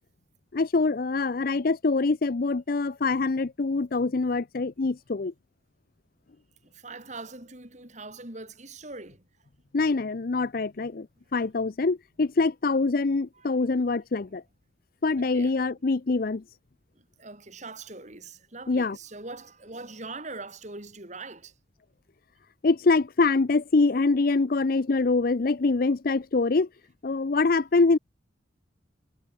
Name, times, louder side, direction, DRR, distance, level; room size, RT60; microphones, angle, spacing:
voice 1, 0.5-5.3 9.7-11.1 11.3-14.4 15.0-16.4 18.7-19.0 22.6-26.7 27.0-28.0, left 3 dB, 50° left, 0.5 m, -24 dB
voice 2, 6.6-9.2 13.3-13.6 15.2-15.5 16.9-21.5, right 3 dB, 40° right, 4.5 m, -42 dB
head